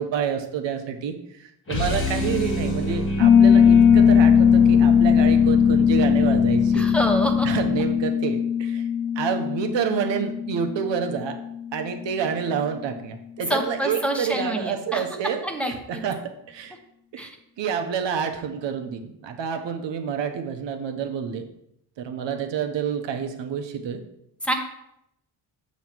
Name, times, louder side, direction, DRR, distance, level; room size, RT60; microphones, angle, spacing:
voice 1, 0.0-6.9 7.4-8.8 9.2-11.4 11.7-16.8 17.1-17.3 17.6-21.4 22.0-24.0, right 7 dB, 85° right, 6 dB, 0.9 m, -28 dB
sound 1, 1.7-8.1, left 1 dB, 30° left, 1.5 m, -27 dB
Piano, 3.2-11.7, left 8 dB, 55° left, 0.8 m, -19 dB
voice 2, 6.7-7.5 13.5-15.0 15.4-16.0 17.2-17.3 24.4-24.5, equal, 5° left, 3 dB, 0.9 m, -26 dB
7.2 x 3.1 x 6.0 m, 0.79 s
cardioid pair, 95°, 43 cm